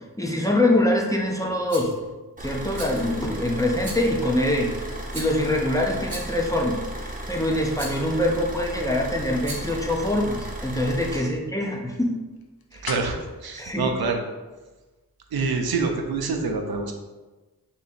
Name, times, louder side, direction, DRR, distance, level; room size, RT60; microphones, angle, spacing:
voice 1, 0.2-1.9 2.4-4.7 5.1-12.1 12.7-12.9 13.5-13.9, left 1 dB, 10° left, -1 dB, 0.6 m, -24 dB
Rattle, 1.7-2.0 2.7-3.2 3.8-4.2 5.1-5.5 6.1-6.5 7.7-8.1 9.3-9.8, right 2 dB, 50° right, 0.9 m, -38 dB
Car / Idling, 2.4-11.2, right 1 dB, 20° right, 0.8 m, -35 dB
sound 1, 9.9-15.0, left 3 dB, 70° left, 0.6 m, -43 dB
voice 2, 12.7-14.2 15.3-16.9, right 4 dB, 75° right, 3 dB, 0.7 m, -27 dB
3.6 x 2.8 x 4.2 m, 1.2 s
wide cardioid pair, 80°, 37 cm